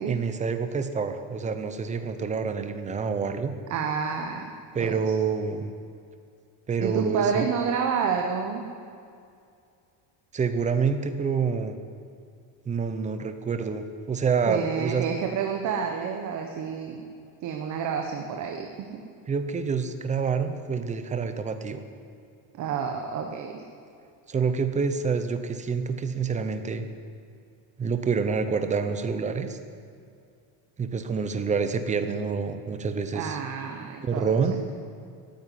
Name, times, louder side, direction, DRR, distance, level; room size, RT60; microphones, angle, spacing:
voice 1, 0.1-3.5 4.7-5.7 6.7-7.5 10.3-11.8 12.7-15.1 19.3-21.8 24.3-26.9 27.8-29.6 30.8-33.4 34.0-34.6, right 5 dB, 15° right, 9 dB, 0.7 m, -27 dB
voice 2, 3.7-4.5 4.8-5.0 6.8-8.6 14.5-17.0 17.4-18.9 22.5-23.6 33.1-34.3, right 6 dB, 45° right, 3 dB, 1.2 m, -29 dB
14.5 x 9.3 x 9.8 m, 2.4 s
cardioid pair, 180°, 42 cm